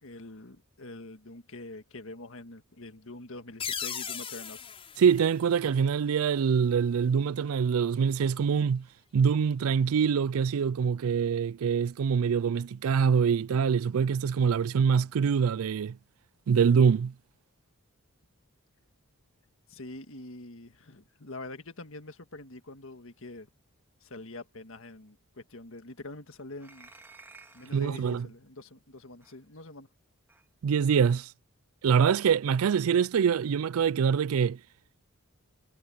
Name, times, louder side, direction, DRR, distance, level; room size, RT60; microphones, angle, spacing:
voice 1, 0.0-4.6 19.7-23.5 24.0-26.9 27.5-29.9, left 2 dB, 65° left, 1.8 m, -45 dB
sound 1, 3.6-6.2, left 7 dB, 25° left, 5.7 m, -38 dB
voice 2, 5.0-8.8 9.1-16.0 16.5-17.1 27.7-28.3 30.6-31.3 31.8-34.6, right 6 dB, 75° right, 0.4 m, -24 dB
sound 2, 26.6-27.9 29.2-29.4 30.3-30.4, right 3 dB, 10° right, 2.6 m, -53 dB
head